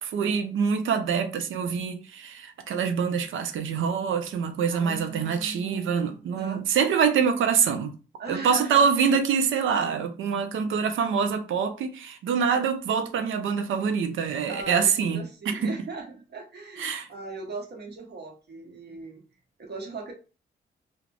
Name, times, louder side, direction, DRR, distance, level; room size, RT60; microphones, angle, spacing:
voice 1, 0.0-7.9 8.3-15.7 16.8-17.1, right 6 dB, 75° right, 0.5 m, -25 dB
voice 2, 4.7-6.7 8.2-8.9 14.5-19.2 19.6-20.1, right 3 dB, 55° right, 1.0 m, -38 dB
2.4 x 2.1 x 3.2 m
supercardioid pair, 50°, 21 cm